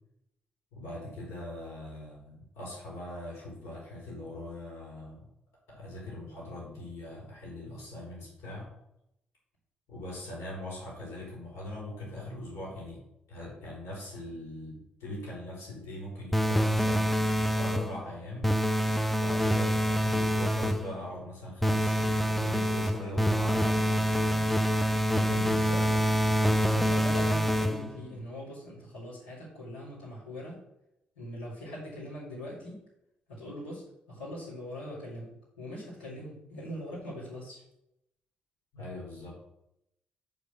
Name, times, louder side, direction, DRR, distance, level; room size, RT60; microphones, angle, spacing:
voice 1, 0.7-5.2 5.7-8.7 9.9-13.0 13.3-18.5 19.1-24.5 25.1-25.9 38.7-39.4, left 1 dB, 60° left, -4 dB, 3.9 m, -41 dB
sound 1, 16.3-18.0 18.4-20.9 21.6-28.0, equal, 5° left, 0.7 m, -26 dB
voice 2, 25.3-25.8 26.6-30.6 31.2-32.8 33.3-37.6, equal, 80° left, -9 dB, 3.7 m, -41 dB
9.4 x 5.1 x 6.0 m, 0.81 s
figure-of-eight pair, 40°, 5 cm